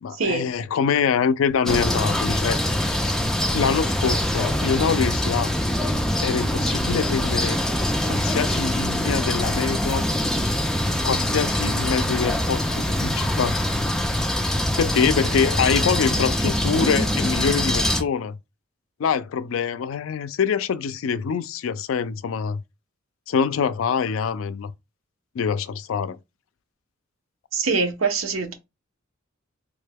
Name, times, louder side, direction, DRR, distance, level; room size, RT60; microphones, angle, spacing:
voice 1, 0.0-2.8 3.5-5.5 6.2-7.6 8.1-10.1 11.0-13.6 14.8-18.4 19.0-22.6 23.3-24.7 25.3-26.2, left 6 dB, 75° left, 0.4 m, -24 dB
sound 1, 1.7-18.0, left 1 dB, 5° left, 0.5 m, -23 dB
voice 2, 27.5-28.5, right 4 dB, 80° right, 0.8 m, -23 dB
3.5 x 2.2 x 3.4 m
head